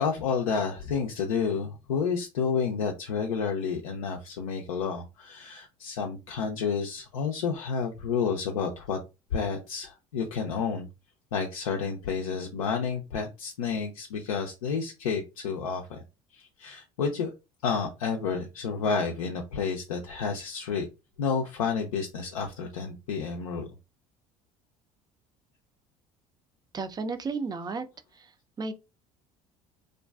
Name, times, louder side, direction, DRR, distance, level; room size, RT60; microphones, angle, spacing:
voice 1, 0.0-9.0 9.3-10.9 11.3-16.0 16.3-17.3 17.6-20.9 21.2-23.7, left 5 dB, 85° left, 0.4 m, -30 dB
voice 2, 26.7-27.9 28.1-28.7, right 4 dB, 25° right, 0.4 m, -33 dB
2.4 x 2.2 x 2.3 m
hypercardioid pair, 65°, 17 cm